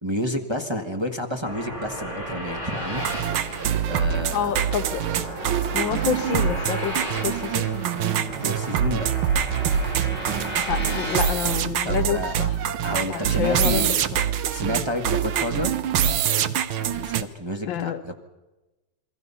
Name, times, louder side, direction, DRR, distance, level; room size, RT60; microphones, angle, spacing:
voice 1, 0.0-3.1 3.9-4.5 8.4-9.1 11.8-12.3 12.8-14.0 14.5-15.8 16.9-18.2, equal, 15° right, 1.2 m, -30 dB
sound 1, 1.4-11.6, equal, 60° right, 7.5 m, -34 dB
sound 2, 3.0-17.2, right 9 dB, 85° right, 1.8 m, -25 dB
voice 2, 4.3-5.0 5.7-7.7 10.7-12.6 13.1-13.8 17.7-18.0, left 8 dB, 75° left, 1.7 m, -28 dB
28.0 x 21.5 x 5.6 m
omnidirectional pair, 2.2 m